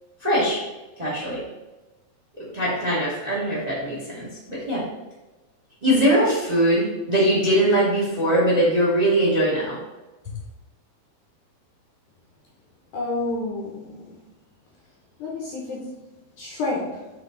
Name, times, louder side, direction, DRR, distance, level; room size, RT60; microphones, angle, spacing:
voice 1, 0.2-0.6 1.0-1.4 2.5-4.8 5.8-9.8, right 1 dB, 20° right, -6 dB, 1.1 m, -21 dB
voice 2, 12.9-14.0 15.2-15.9 16.4-17.1, left 2 dB, 70° left, -3 dB, 2.0 m, -29 dB
7.4 x 3.5 x 4.0 m, 1.1 s
omnidirectional pair, 4.4 m